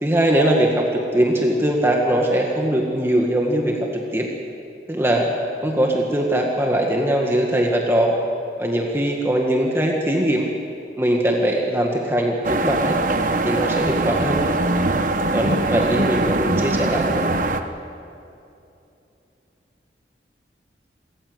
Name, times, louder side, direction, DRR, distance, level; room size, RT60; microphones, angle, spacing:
voice 1, 0.0-4.3 4.9-5.3 5.6-8.1 8.6-10.5 11.0-13.0 13.4-14.4 15.3-17.2, right 1 dB, 15° right, 0 dB, 1.8 m, -21 dB
sound 1, 12.4-17.6, right 2 dB, 45° right, 1.1 m, -22 dB
27.5 x 14.5 x 8.1 m, 2.7 s
head